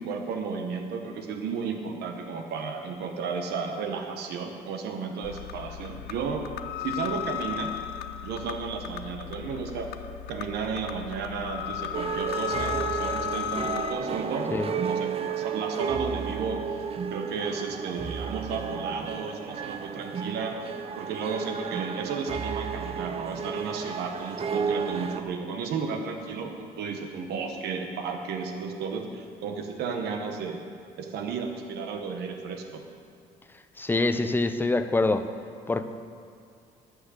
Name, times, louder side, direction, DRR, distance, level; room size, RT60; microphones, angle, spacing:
voice 1, 0.0-6.5 6.8-7.8 8.2-10.0 10.3-30.6 31.0-32.8, right 5 dB, 75° right, 4 dB, 1.1 m, -33 dB
sound 1, 5.2-13.9, left 11 dB, 75° left, 0.5 m, -35 dB
sound 2, 11.9-25.2, right 6 dB, 35° right, 0.6 m, -32 dB
voice 2, 33.8-35.3 35.7-35.8, left 2 dB, 10° left, 9 dB, 0.6 m, -25 dB
11.0 x 6.2 x 8.0 m, 2.4 s
cardioid pair, 110°, 17 cm